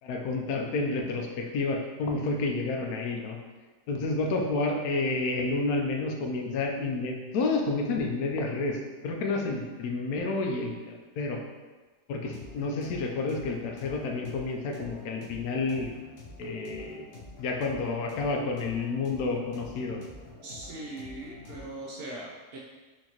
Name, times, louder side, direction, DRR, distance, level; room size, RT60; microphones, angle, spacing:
voice 1, 0.0-3.4 3.9-10.7 11.2-11.4 12.1-15.9 16.4-17.1 17.4-20.0, left 3 dB, 90° left, 2 dB, 1.1 m, -30 dB
sound 1, 12.2-21.7, left 2 dB, 60° left, 1.2 m, -48 dB
voice 2, 20.4-22.6, right 1 dB, 75° right, -3 dB, 0.5 m, -40 dB
4.5 x 2.8 x 2.9 m, 1.3 s
omnidirectional pair, 1.6 m